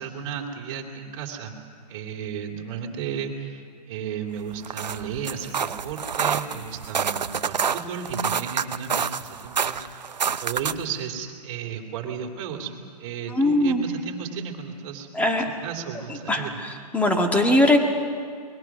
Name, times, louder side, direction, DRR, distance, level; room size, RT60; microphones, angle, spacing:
voice 1, 0.0-1.6 1.9-10.1 10.4-12.7 13.0-16.6, right 7 dB, 40° right, 1 dB, 3.2 m, -34 dB
sound 1, 4.5-10.9, right 7 dB, 85° right, 0.9 m, -28 dB
voice 2, 13.3-13.9 15.1-15.5 16.3-17.8, left 1 dB, 5° left, 3 dB, 1.9 m, -21 dB
29.0 x 21.0 x 6.2 m, 2.2 s
hypercardioid pair, 140°, 21 cm